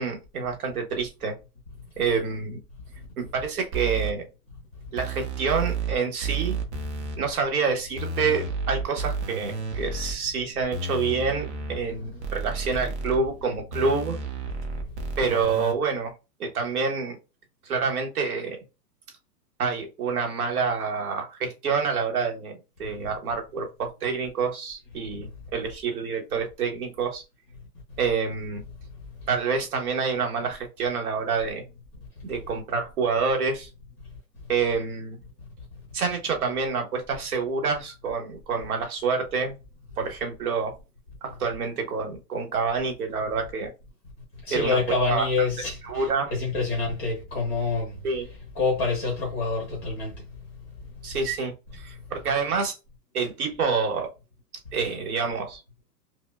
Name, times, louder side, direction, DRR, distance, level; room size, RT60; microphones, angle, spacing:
voice 1, 0.0-1.3 2.0-2.6 3.2-4.2 4.9-6.6 7.2-14.2 15.2-16.1 16.4-17.2 17.6-18.6 19.6-27.2 28.0-28.6 29.3-31.6 32.2-33.7 34.5-35.2 35.9-39.5 40.0-40.7 41.2-43.7 44.5-44.8 45.1-45.2 45.8-46.3 48.0-48.2 51.0-52.7 53.1-54.1 54.7-55.6, right 5 dB, 60° right, 1.4 m, -27 dB
sound 1, 3.7-4.1 5.0-5.9 6.2-7.2 8.0-10.1 10.7-11.8 12.2-13.2 13.7-15.7, right 4 dB, 45° right, 0.8 m, -31 dB
voice 2, 44.5-47.9 48.5-50.1, left 3 dB, 10° left, 0.7 m, -27 dB
5.2 x 2.2 x 2.3 m
hypercardioid pair, 175°, 50 cm